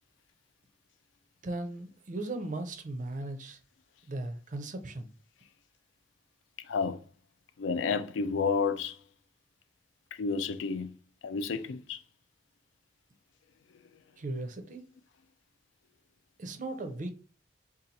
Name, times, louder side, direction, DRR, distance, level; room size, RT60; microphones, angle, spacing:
voice 1, 1.4-3.6 4.0-5.1 14.2-14.8 16.4-17.1, right 2 dB, 40° right, 0.5 m, -37 dB
voice 2, 6.6-7.0 7.6-9.0 10.1-10.9 11.2-12.0, left 5 dB, 70° left, 0.4 m, -31 dB
2.7 x 2.4 x 4.0 m
head